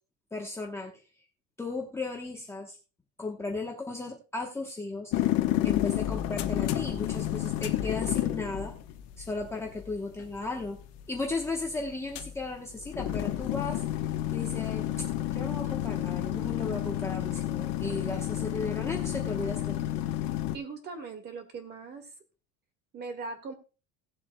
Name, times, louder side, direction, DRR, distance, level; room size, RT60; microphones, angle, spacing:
voice 1, 0.3-1.0 1.6-2.8 3.2-5.3 5.6-8.7 9.2-10.8 11.1-13.8 14.3-15.1 15.3-19.8, left 3 dB, 10° left, 0 dB, 1.0 m, -35 dB
sound 1, 5.1-20.6, left 13 dB, 50° left, 1.1 m, -31 dB
voice 2, 20.5-22.1 22.9-23.5, right 4 dB, 30° right, 7 dB, 1.9 m, -40 dB
18.0 x 7.5 x 2.3 m, 0.33 s
cardioid pair, 170°, 33 cm